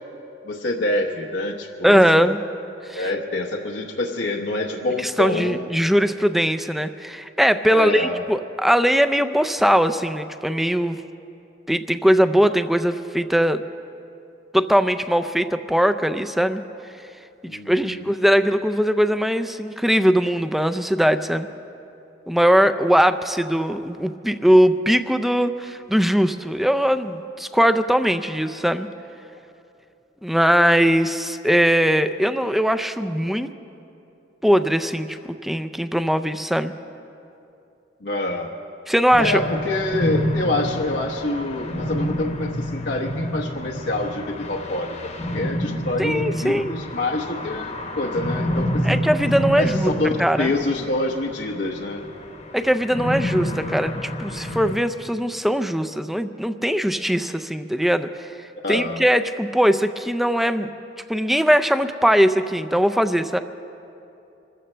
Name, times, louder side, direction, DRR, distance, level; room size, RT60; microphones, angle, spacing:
voice 1, 0.4-2.3 2.9-5.7 7.7-8.2 17.5-18.1 38.0-38.5 39.2-44.9 45.3-49.0 49.6-50.1 50.4-52.0 58.6-59.0, left 2 dB, 85° left, 0 dB, 1.0 m, -26 dB
voice 2, 1.8-2.4 2.9-3.1 5.0-11.0 11.7-13.6 14.5-16.6 17.7-21.5 22.3-28.9 30.2-33.5 34.4-35.2 35.4-36.7 38.9-39.4 46.0-46.7 48.8-49.9 50.2-50.5 52.5-58.1 58.7-60.7 61.1-63.4, equal, ahead, 9 dB, 0.4 m, -20 dB
sound 1, 39.1-54.7, equal, 40° left, 1.0 m, -28 dB
26.0 x 14.5 x 3.3 m, 2.8 s
head